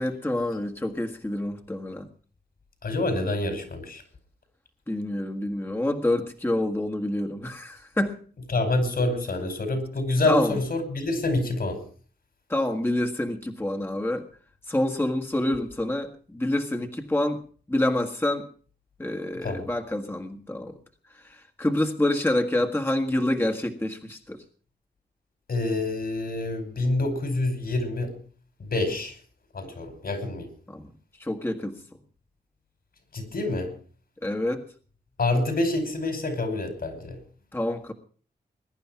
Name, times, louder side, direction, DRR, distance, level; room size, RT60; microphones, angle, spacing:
voice 1, 0.0-2.1 4.9-8.2 10.2-10.5 12.5-14.2 14.7-17.4 17.7-18.5 19.0-20.8 21.1-24.4 30.7-30.9 31.2-31.8 34.2-34.6 37.5-37.9, left 1 dB, 15° left, 4 dB, 1.6 m, -27 dB
voice 2, 2.8-4.0 8.5-11.8 19.4-19.7 25.5-28.2 28.6-29.2 29.5-30.5 33.1-33.7 35.2-37.2, left 2 dB, 65° left, 7 dB, 5.2 m, -27 dB
21.0 x 10.5 x 5.8 m, 0.44 s
cardioid pair, 70°, 17 cm